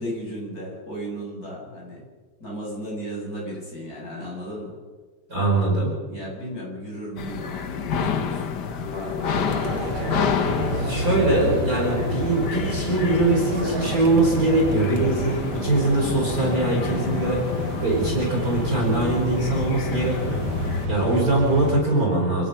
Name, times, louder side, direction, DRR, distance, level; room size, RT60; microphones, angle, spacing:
voice 1, 0.0-2.0 2.4-4.8 6.1-10.5, equal, 25° left, -3 dB, 8.4 m, -35 dB
voice 2, 5.3-5.9 10.5-17.4 17.8-20.5 20.9-22.5, right 2 dB, 25° right, -2 dB, 5.4 m, -22 dB
sound 1, 7.2-20.9, left 7 dB, 70° left, 1.0 m, -30 dB
sound 2, 9.3-21.7, right 1 dB, 45° right, 2.7 m, -29 dB
28.5 x 18.0 x 5.7 m, 1.4 s
omnidirectional pair, 3.6 m